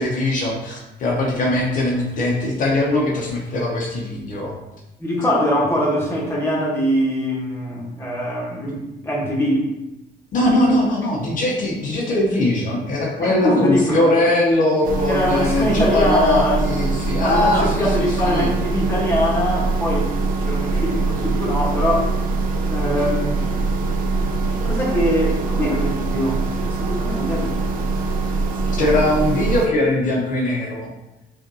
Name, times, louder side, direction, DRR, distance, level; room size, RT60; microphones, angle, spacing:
voice 1, 0.0-4.5 10.3-18.5 28.7-30.9, left 1 dB, 50° left, -2 dB, 0.8 m, -21 dB
voice 2, 5.0-9.7 13.2-14.1 15.1-16.6 17.2-22.2 22.7-23.4 24.6-27.6 28.7-29.0 30.0-30.1, equal, 15° left, -4 dB, 1.1 m, -22 dB
sound 1, 14.8-29.7, right 3 dB, 55° right, 0.5 m, -23 dB
5.2 x 2.5 x 2.7 m, 0.94 s
cardioid pair, 110°, 17 cm